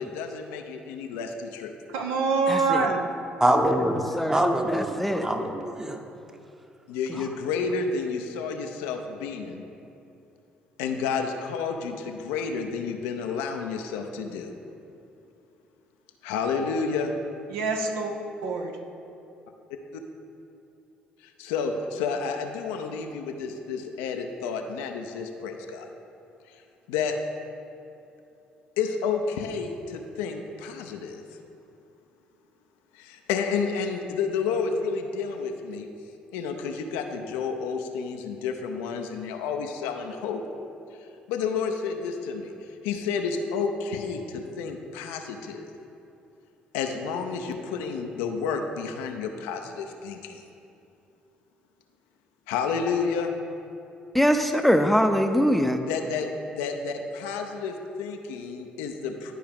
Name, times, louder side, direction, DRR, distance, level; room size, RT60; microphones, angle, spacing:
voice 1, 0.0-1.7 6.9-9.6 10.8-14.5 16.2-17.1 19.9-20.0 21.2-25.9 26.9-27.2 28.8-31.2 32.9-35.9 36.3-40.4 41.3-42.5 42.8-45.7 46.7-50.4 52.5-53.3 55.9-56.3 56.6-59.3, left 5 dB, 75° left, 4 dB, 0.5 m, -30 dB
voice 2, 1.9-3.1 17.5-18.1 18.4-18.8, right 4 dB, 75° right, 3 dB, 0.7 m, -25 dB
voice 3, 2.5-2.9 3.9-4.4 4.7-5.3 54.1-55.8, equal, 5° left, 6 dB, 0.6 m, -23 dB
voice 4, 3.4-6.0, right 1 dB, 15° right, 4 dB, 0.9 m, -24 dB
11.5 x 4.6 x 3.5 m, 2.8 s
hypercardioid pair, 50°, 4 cm